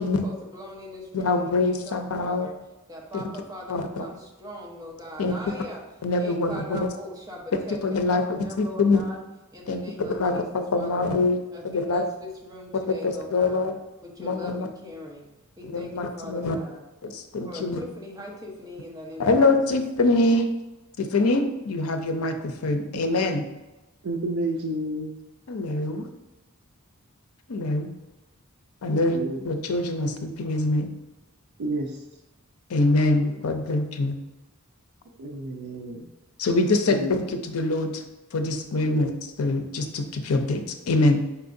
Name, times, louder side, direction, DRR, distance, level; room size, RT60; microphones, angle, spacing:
voice 1, 0.0-2.6 2.9-5.8 6.1-9.2 9.5-11.1 11.5-13.7 14.0-15.3 15.6-16.8 17.4-19.8, left 1 dB, 15° right, -2 dB, 0.9 m, -40 dB
voice 2, 1.1-2.5 3.1-3.3 3.7-4.1 5.2-5.4 6.0-6.9 7.5-9.0 9.7-11.4 11.6-12.0 12.9-13.8 14.2-14.7 15.7-16.6 17.0-17.8 19.2-20.5 21.0-23.4 25.5-26.1 27.5-27.9 28.8-30.9 32.7-34.2 36.4-38.0 38.3-39.1 39.4-41.2, left 2 dB, 75° left, 7 dB, 0.5 m, -24 dB
voice 3, 24.0-25.1 28.9-29.6 31.6-32.0 33.2-33.4 35.2-36.0 36.9-37.1 38.8-39.1, right 1 dB, 70° right, 0 dB, 0.5 m, -31 dB
4.7 x 4.3 x 2.6 m, 1.1 s
head